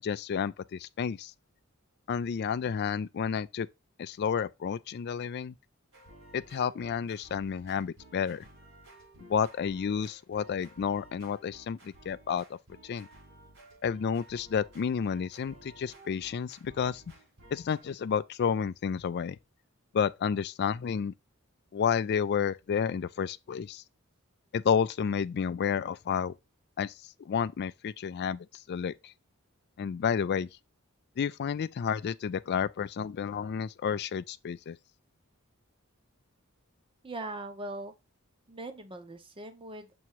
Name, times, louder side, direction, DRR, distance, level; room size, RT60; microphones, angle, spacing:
voice 1, 0.0-1.3 2.1-3.7 4.0-5.5 6.3-8.4 9.3-12.6 12.8-13.1 13.8-17.0 17.5-19.4 19.9-21.1 21.7-23.8 24.5-26.3 26.8-26.9 27.3-29.1 29.8-30.5 31.2-34.8, left 7 dB, 50° left, 0.3 m, -31 dB
sound 1, 5.9-17.9, right 1 dB, 65° right, 3.9 m, -55 dB
voice 2, 37.0-37.9 38.5-39.9, right 2 dB, 25° right, 0.8 m, -40 dB
7.0 x 3.0 x 4.5 m
head